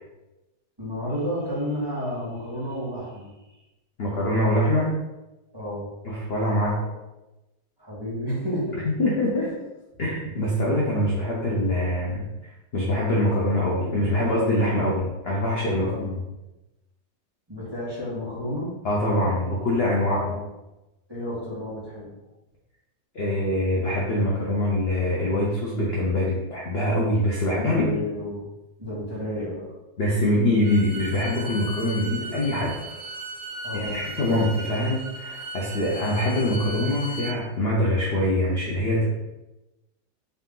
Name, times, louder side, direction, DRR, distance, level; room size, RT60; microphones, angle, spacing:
voice 1, 0.8-3.3 5.5-5.9 7.8-8.8 9.3-9.4 15.8-16.1 17.5-18.7 20.0-20.4 21.1-22.1 27.7-28.5 28.8-29.7 33.6-34.4, left 1 dB, 15° right, -10 dB, 1.3 m, -31 dB
voice 2, 4.0-4.9 6.0-6.9 8.8-9.5 10.0-12.2 12.7-16.2 18.8-20.3 23.1-27.8 30.0-32.7 33.7-39.1, left 1 dB, 55° left, -4 dB, 0.6 m, -24 dB
Bowed string instrument, 30.6-37.4, right 1 dB, 85° right, 1.4 m, -37 dB
4.0 x 2.8 x 3.6 m, 1.0 s
omnidirectional pair, 2.0 m